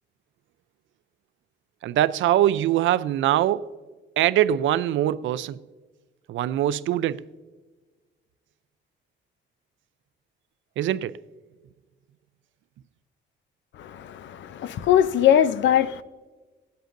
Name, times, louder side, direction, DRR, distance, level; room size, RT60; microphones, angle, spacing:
voice 1, 1.8-3.7 4.2-5.6 6.3-7.2 10.8-11.1, right 12 dB, 80° right, 0.4 m, -22 dB
voice 2, 13.8-16.0, left 10 dB, 70° left, 0.5 m, -21 dB
20.0 x 8.0 x 2.5 m
cardioid pair, 135°, 20 cm